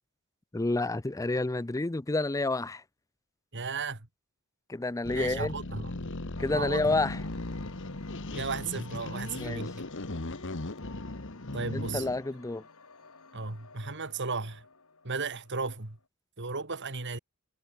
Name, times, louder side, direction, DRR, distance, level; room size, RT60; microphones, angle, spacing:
voice 1, 0.5-2.8 4.7-5.5 6.4-7.2 9.4-9.7 11.7-12.6, left 2 dB, 15° left, 0.5 m, -29 dB
voice 2, 3.5-4.1 5.1-5.9 6.5-6.9 8.3-9.7 11.5-12.1 13.3-14.6 15.0-16.0 16.4-17.2, right 4 dB, 55° right, 2.4 m, -35 dB
sound 1, 5.0-12.2, left 2 dB, 60° left, 1.6 m, -38 dB
sound 2, 6.4-16.0, left 3 dB, 75° left, 3.0 m, -52 dB
head